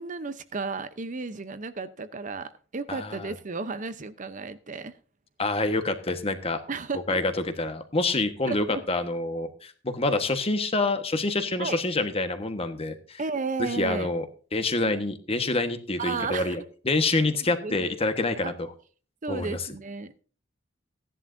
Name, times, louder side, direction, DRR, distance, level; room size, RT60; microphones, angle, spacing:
voice 1, 0.0-4.9 6.7-7.2 8.5-8.8 11.6-11.8 13.2-14.1 16.0-16.6 17.3-17.9 18.4-18.5 19.2-20.2, right 4 dB, 40° right, 12 dB, 0.7 m, -33 dB
voice 2, 2.9-3.3 5.4-6.6 7.1-7.3 7.6-13.2 13.6-14.2 14.5-18.7 19.3-19.6, left 2 dB, 30° left, 8 dB, 1.3 m, -27 dB
16.0 x 11.0 x 2.6 m, 0.38 s
head